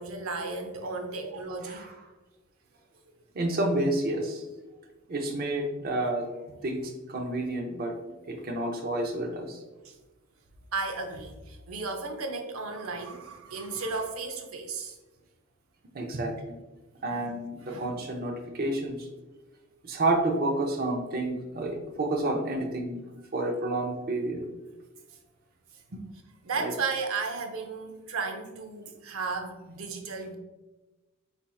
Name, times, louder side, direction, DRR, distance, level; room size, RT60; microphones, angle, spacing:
voice 1, 0.0-1.9 9.8-10.0 10.7-15.0 17.1-17.4 17.6-18.0 26.4-30.4, right 4 dB, 90° right, 5 dB, 0.7 m, -34 dB
voice 2, 3.3-4.4 5.1-6.3 6.6-9.6 15.9-16.6 17.0-19.1 19.8-23.0 23.3-24.4 26.6-26.7, right 2 dB, 45° right, 2 dB, 0.6 m, -30 dB
4.4 x 4.2 x 2.3 m, 1.1 s
head